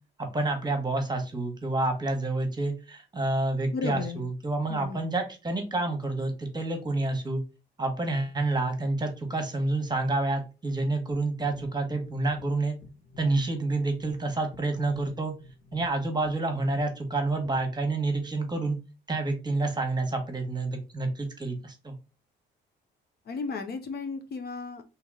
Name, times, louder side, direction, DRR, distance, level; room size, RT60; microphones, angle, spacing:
voice 1, 0.3-7.4 7.8-12.8 13.2-15.3 15.7-18.8 19.1-21.9, right 2 dB, 20° right, 5 dB, 1.1 m, -28 dB
voice 2, 3.7-4.3 4.7-5.1 23.3-24.8, left 4 dB, 55° left, 7 dB, 0.6 m, -34 dB
sound 1, 11.3-18.0, left 1 dB, 75° left, 1.3 m, -49 dB
2.9 x 2.9 x 3.7 m, 0.30 s
cardioid pair, 90°, 20 cm